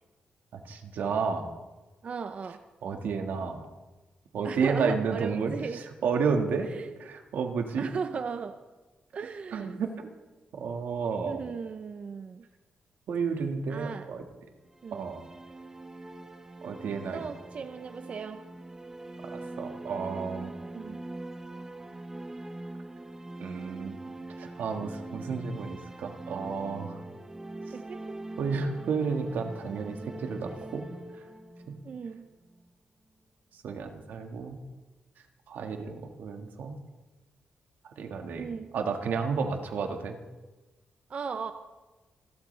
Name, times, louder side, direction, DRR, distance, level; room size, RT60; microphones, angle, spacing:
voice 1, 0.5-1.5 2.8-3.7 4.3-6.7 7.0-7.9 9.5-10.1 10.5-11.4 13.1-14.2 14.9-15.2 16.6-17.2 19.2-20.5 23.4-24.0 24.4-27.0 28.4-30.8 31.7-31.8 33.6-34.6 35.5-36.8 38.0-38.5 38.7-40.2, right 5 dB, 85° right, 4 dB, 1.6 m, -31 dB
voice 2, 2.0-2.6 4.4-5.8 6.7-6.9 7.8-8.6 9.1-9.8 11.3-12.5 13.7-14.1 14.8-15.1 17.1-18.4 20.7-21.0 27.7-28.0 31.8-32.2 38.4-38.7 41.1-41.5, right 5 dB, 45° right, 8 dB, 0.6 m, -36 dB
sound 1, 14.7-32.6, right 2 dB, 15° right, 0.9 m, -43 dB
27.5 x 12.0 x 3.3 m, 1.2 s
wide cardioid pair, 155°, 3 cm